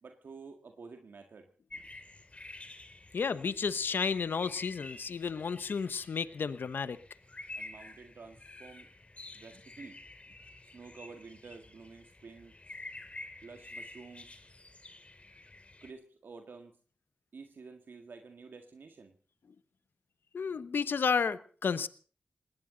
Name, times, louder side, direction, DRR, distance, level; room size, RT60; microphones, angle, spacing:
voice 1, 0.0-1.5 7.6-8.9 9.3-10.0 10.7-12.5 13.4-14.4 15.8-16.8 17.3-19.1, right 4 dB, 75° right, 5 dB, 1.9 m, -50 dB
sound 1, 1.7-15.9, left 2 dB, 35° left, 2.7 m, -50 dB
voice 2, 3.1-7.0 20.3-21.9, left 5 dB, 75° left, 14 dB, 1.0 m, -32 dB
20.0 x 18.0 x 4.0 m, 0.41 s
cardioid pair, 50°, 4 cm